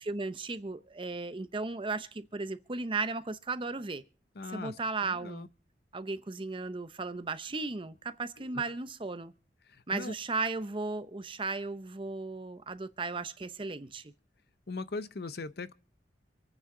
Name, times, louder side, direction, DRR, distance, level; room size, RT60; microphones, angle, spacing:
voice 1, 0.1-4.0 4.5-5.5 5.9-9.3 9.9-14.1, right 3 dB, 30° right, 0.7 m, -35 dB
voice 2, 4.3-5.5 8.4-8.7 9.6-10.1 14.7-15.7, left 3 dB, 60° left, 0.7 m, -40 dB
26.5 x 9.3 x 3.8 m
head